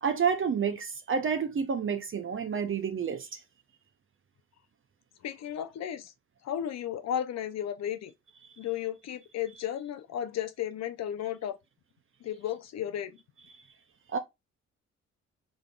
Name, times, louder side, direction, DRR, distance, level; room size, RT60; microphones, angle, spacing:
voice 1, 0.0-3.3 14.1-14.2, right 6 dB, 45° right, 0.7 m, -29 dB
voice 2, 5.2-6.1 6.4-8.1 8.6-11.6 12.2-13.2, left 10 dB, 60° left, 0.5 m, -34 dB
3.7 x 3.5 x 2.3 m
supercardioid pair, 60°, 30 cm